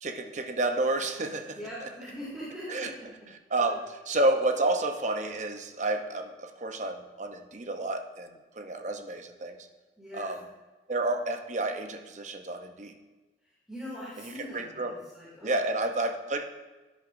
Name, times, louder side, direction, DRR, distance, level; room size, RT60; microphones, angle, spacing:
voice 1, 0.0-1.9 2.7-2.9 3.5-9.6 10.1-10.5 10.9-13.0 14.2-15.0 15.4-16.5, right 2 dB, 45° right, 6 dB, 0.8 m, -30 dB
voice 2, 1.5-3.1 3.6-3.8 10.0-10.3 13.7-15.6, equal, 5° right, -9 dB, 2.6 m, -41 dB
13.5 x 10.0 x 2.6 m, 1.2 s
head